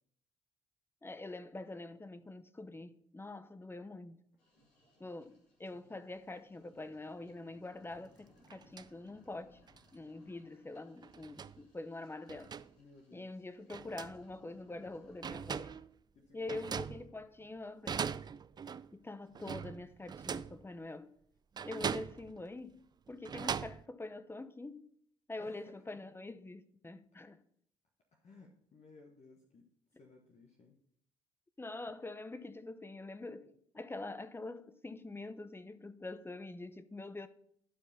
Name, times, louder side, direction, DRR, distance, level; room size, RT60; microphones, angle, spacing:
voice 1, 1.0-4.2 5.0-9.6 9.9-12.5 13.1-15.7 16.3-18.2 18.9-21.1 21.6-24.9 25.3-27.4 31.6-37.3, left 2 dB, 15° left, 0.7 m, -45 dB
sound 1, 4.4-15.8, equal, 80° left, 2.6 m, -66 dB
sound 2, 7.9-8.0 8.4-8.9 9.7-9.8 11.0-11.6 12.3-12.7 13.7-14.2 14.9-15.0 15.2-15.9 16.5-17.4 17.9-18.9 19.3-20.6 21.6-22.4 23.1-23.8, right 6 dB, 30° right, 0.3 m, -40 dB
voice 2, 12.8-13.3 16.1-16.8 25.4-25.8 28.1-29.7 30.0-30.8, left 3 dB, 50° left, 1.3 m, -59 dB
11.5 x 4.9 x 4.2 m
hypercardioid pair, 45°, 15 cm